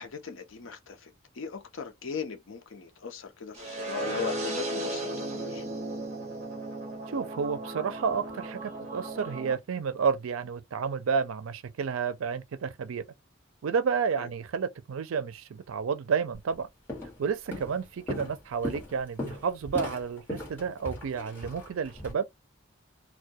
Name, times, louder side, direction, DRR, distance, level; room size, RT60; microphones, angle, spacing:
voice 1, 0.0-5.6 14.1-14.3, left 6 dB, 75° left, 0.6 m, -39 dB
sound 1, 3.5-9.5, right 1 dB, 35° right, 0.8 m, -35 dB
voice 2, 7.1-13.0 13.6-16.7 17.2-22.3, right 6 dB, 85° right, 0.4 m, -31 dB
Walk footsteps, 16.3-16.6 16.9-17.2 17.5-22.1, left 1 dB, 10° left, 1.2 m, -38 dB
2.2 x 2.1 x 2.6 m
head